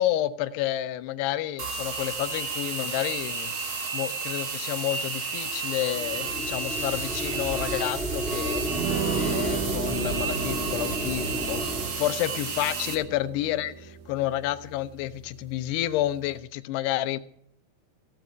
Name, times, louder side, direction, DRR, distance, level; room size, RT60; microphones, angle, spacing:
voice 1, 0.0-3.6 3.9-8.6 9.1-11.7 12.0-17.2, left 13 dB, 80° left, 2.8 m, -30 dB
sound 1, 1.6-12.9, right 4 dB, 45° right, 1.9 m, -32 dB
sound 2, 5.8-11.9, equal, ahead, 0.9 m, -32 dB
sound 3, 8.6-16.4, right 8 dB, 65° right, 1.8 m, -36 dB
16.0 x 7.6 x 9.2 m
omnidirectional pair, 4.8 m